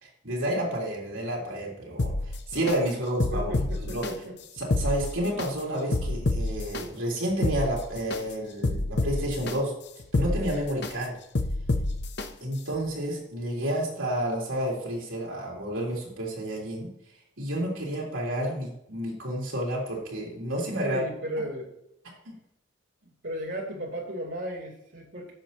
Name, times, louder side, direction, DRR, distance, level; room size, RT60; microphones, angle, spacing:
voice 1, 0.0-4.1 4.6-9.7 10.1-11.1 12.4-16.9 17.4-21.0 22.0-22.3, right 1 dB, 85° right, -3 dB, 3.2 m, -30 dB
sound 1, 2.0-2.8 3.2-4.1 4.6-5.5 5.9-6.8 7.3-8.2 8.6-9.5 10.0-10.9 11.3-12.3 12.7-12.8, left 2 dB, 55° left, 0.7 m, -28 dB
voice 2, 3.3-4.3 20.8-21.7 23.0-25.3, equal, 65° right, -5 dB, 2.9 m, -35 dB
10.5 x 7.0 x 2.9 m, 0.80 s
head